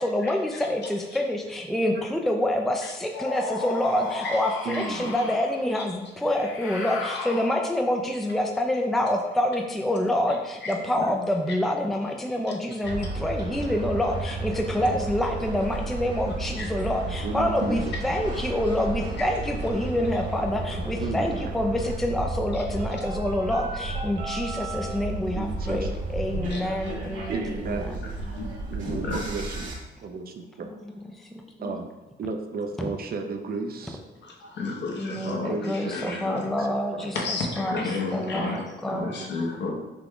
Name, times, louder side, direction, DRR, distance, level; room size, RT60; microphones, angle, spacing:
voice 1, 0.0-28.0 31.1-31.7 35.0-37.8 38.1-39.1, left 1 dB, ahead, 2 dB, 0.4 m, -27 dB
sound 1, 3.1-5.6 6.2-7.9, left 3 dB, 90° left, 0.8 m, -34 dB
voice 2, 4.6-5.1 8.3-8.4 17.2-17.9 21.0-21.5 25.3-25.9 27.3-28.0 28.7-29.8 30.0-30.7 31.6-34.0 35.2-36.7 36.9-37.1 38.2-39.2, right 4 dB, 50° right, 5 dB, 0.6 m, -34 dB
sound 2, 12.8-29.7, right 3 dB, 75° right, 1.2 m, -33 dB
voice 3, 28.4-29.2 34.2-36.5 37.1-38.6 38.9-39.7, left 3 dB, 60° left, 0 dB, 1.1 m, -32 dB
5.9 x 2.3 x 3.6 m, 1.1 s
cardioid pair, 90°, 20 cm